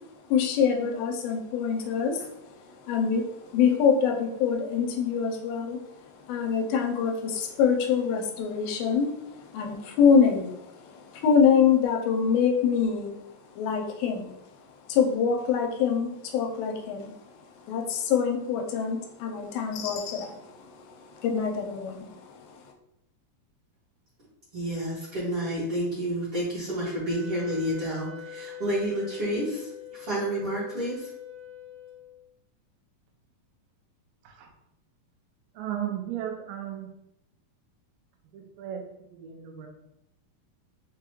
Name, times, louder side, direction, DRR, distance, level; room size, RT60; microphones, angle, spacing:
voice 1, 0.3-13.1 13.5-14.4 14.9-22.7, left 6 dB, 85° left, 3 dB, 2.4 m, -25 dB
voice 2, 24.5-31.1, right 1 dB, 60° right, -10 dB, 1.5 m, -30 dB
Wind instrument woodwind instrument, 27.1-32.3, left 8 dB, 65° left, 1.4 m, -43 dB
voice 3, 35.5-36.9 38.3-39.7, right 10 dB, 80° right, 2 dB, 2.4 m, -35 dB
5.9 x 2.3 x 3.0 m, 0.81 s
omnidirectional pair, 4.3 m